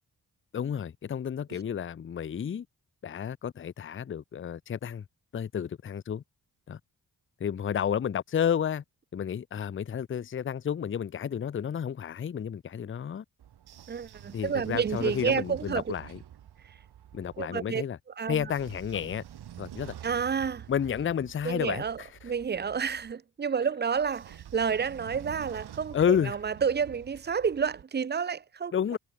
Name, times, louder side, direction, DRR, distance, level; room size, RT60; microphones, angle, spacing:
voice 1, 0.5-2.7 3.0-5.0 5.3-6.2 6.7-6.8 7.4-8.8 9.1-13.2 14.3-16.2 17.1-18.0 18.3-19.2 19.6-19.9 20.7-22.1 25.9-26.4 28.7-29.0, left 8 dB, 35° left, 0.5 m, -31 dB
Train / Sliding door, 13.4-17.4 18.3-23.1 23.9-27.8, right 10 dB, 80° right, 1.1 m, -47 dB
voice 2, 13.9-15.9 17.4-17.8 18.2-18.5 20.0-20.7 21.4-29.0, right 6 dB, 25° right, 0.5 m, -30 dB
wide cardioid pair, 110°, 38 cm